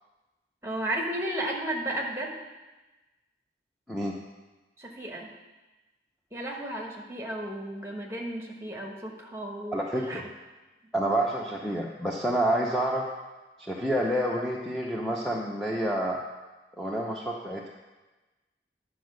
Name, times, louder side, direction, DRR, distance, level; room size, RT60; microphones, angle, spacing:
voice 1, 0.6-2.4 4.8-5.3 6.3-10.2, right 1 dB, 15° right, 0 dB, 1.2 m, -34 dB
voice 2, 9.7-10.2 10.9-13.1 13.6-16.2 16.8-17.7, right 1 dB, 5° left, -3 dB, 0.6 m, -28 dB
9.9 x 4.7 x 6.3 m, 1.2 s
head